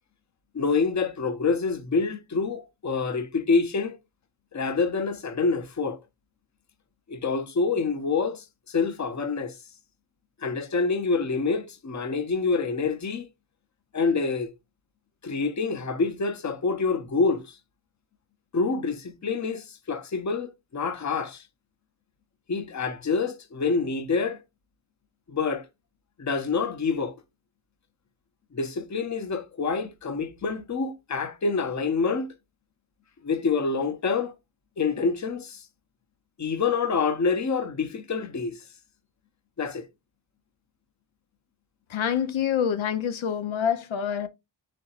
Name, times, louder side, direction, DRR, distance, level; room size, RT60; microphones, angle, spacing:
voice 1, 0.5-4.0 4.5-6.0 7.1-9.5 10.4-13.3 13.9-14.5 15.2-17.5 18.5-21.4 22.5-24.4 25.3-25.7 26.2-27.1 28.5-32.3 33.2-34.3 34.8-35.6 36.4-38.6 39.6-39.9, left 4 dB, 35° left, 0.7 m, -27 dB
voice 2, 41.9-44.3, left 8 dB, 80° left, 0.6 m, -26 dB
4.3 x 3.9 x 2.4 m
wide cardioid pair, 70°, 46 cm